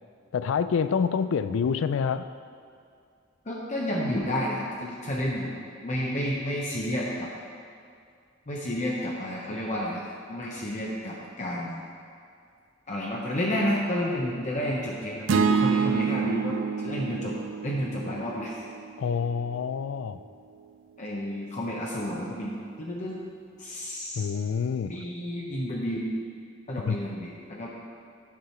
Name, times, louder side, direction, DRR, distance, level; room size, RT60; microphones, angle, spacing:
voice 1, 0.3-2.3 19.0-20.2 24.2-25.0 26.9-27.0, left 6 dB, 80° left, 13 dB, 0.3 m, -27 dB
voice 2, 3.5-5.5 5.8-7.3 8.5-11.8 12.9-17.4 17.6-18.6 21.0-23.2 23.6-24.2 24.9-26.1 26.7-27.7, equal, 40° left, -4 dB, 0.8 m, -31 dB
sound 1, 15.3-19.6, right 6 dB, 70° right, 0.4 m, -28 dB
9.2 x 4.8 x 5.7 m, 2.3 s
head